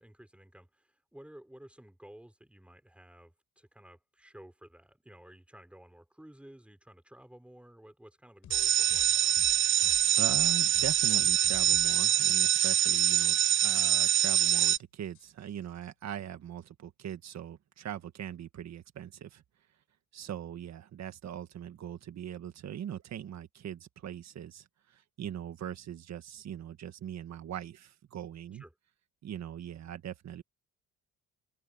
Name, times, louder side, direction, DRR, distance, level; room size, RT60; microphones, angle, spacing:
voice 1, 0.0-9.4 28.5-28.7, right 1 dB, 5° right, 3.7 m, -54 dB
sound 1, 8.4-12.1 12.4-13.0 13.3-13.4 13.7-13.9 14.2-15.9, left 12 dB, 80° left, 4.2 m, -52 dB
sound 2, 8.5-14.8, right 10 dB, 40° right, 0.4 m, -25 dB
voice 2, 10.2-19.4 20.1-28.6 29.2-30.4, right 10 dB, 60° right, 1.7 m, -41 dB
cardioid pair, 90°, 30 cm